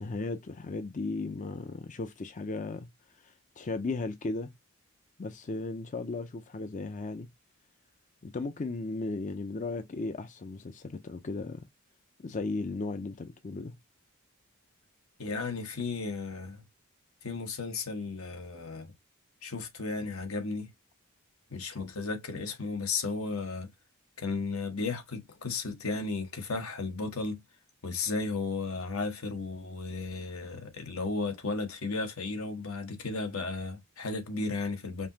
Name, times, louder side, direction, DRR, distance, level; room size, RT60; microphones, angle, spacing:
voice 1, 0.0-2.9 3.2-4.5 5.2-7.3 8.2-11.7 12.2-13.8, left 3 dB, 35° left, 0.5 m, -36 dB
voice 2, 15.2-16.6 17.2-18.9 19.4-20.7 21.5-23.7 24.2-27.4 27.8-35.1, left 3 dB, 80° left, 1.3 m, -34 dB
5.3 x 2.9 x 2.7 m
head